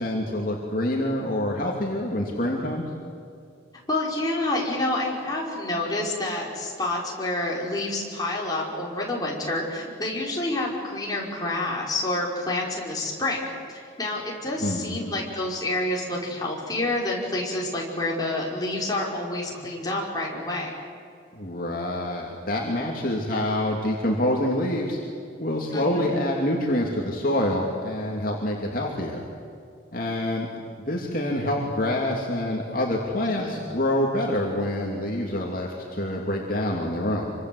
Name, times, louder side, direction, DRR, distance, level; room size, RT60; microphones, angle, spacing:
voice 1, 0.0-2.8 14.6-15.1 21.3-25.0 25.4-29.2 29.9-30.5 30.8-37.3, left 1 dB, 50° left, -2 dB, 3.0 m, -26 dB
voice 2, 3.9-13.4 13.7-20.7 25.7-26.1 33.4-33.6, left 2 dB, 20° left, -3 dB, 5.5 m, -28 dB
27.0 x 25.0 x 8.0 m, 2.4 s
head